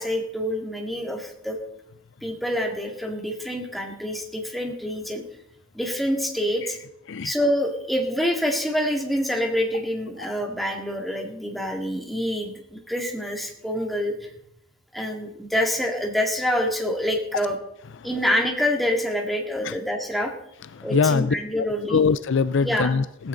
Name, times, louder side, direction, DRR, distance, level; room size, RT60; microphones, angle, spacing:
voice 1, 0.0-1.6 2.2-5.2 5.7-6.8 7.2-14.3 14.9-17.6 18.0-20.3 20.8-22.0 22.6-22.9, equal, ahead, 1 dB, 2.2 m, -26 dB
voice 2, 20.7-23.3, left 5 dB, 60° left, 14 dB, 0.5 m, -23 dB
16.0 x 15.0 x 3.9 m, 0.75 s
head